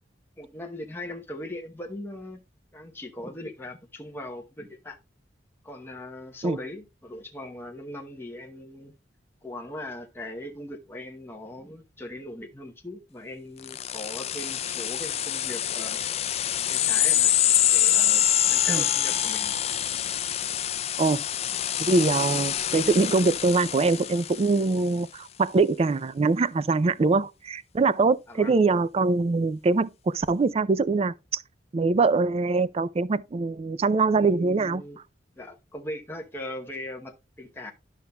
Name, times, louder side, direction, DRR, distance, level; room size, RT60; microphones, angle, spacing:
voice 1, 0.4-2.4 2.7-5.0 5.6-8.9 9.4-16.0 16.7-17.3 17.7-19.6 28.3-28.5 34.2-35.0 35.4-37.7, left 1 dB, 10° left, 0.9 m, -39 dB
sound 1, 13.6-24.7, left 11 dB, 35° left, 0.4 m, -25 dB
voice 2, 21.8-31.4 31.7-34.8, right 3 dB, 35° right, 0.4 m, -23 dB
12.0 x 5.5 x 2.2 m
head